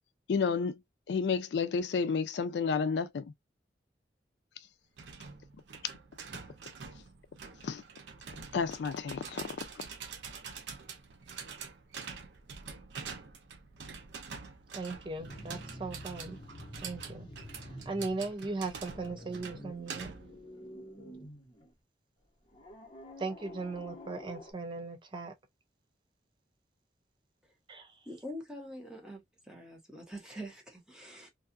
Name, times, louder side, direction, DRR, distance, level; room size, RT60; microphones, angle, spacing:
voice 1, 0.3-0.7 1.1-3.2 7.6-7.8 8.5-9.9, left 5 dB, 80° left, 0.4 m, -31 dB
sound 1, 5.0-20.4, right 5 dB, 85° right, 0.5 m, -46 dB
voice 2, 14.7-16.4 16.8-17.3 17.6-20.1 23.2-25.3 27.7-27.9, right 3 dB, 30° right, 0.4 m, -38 dB
sound 2, 15.2-18.3 18.6-21.7 22.5-24.5, equal, 30° left, 0.9 m, -48 dB
voice 3, 28.1-31.3, equal, 5° right, 0.9 m, -45 dB
2.6 x 2.4 x 2.4 m
head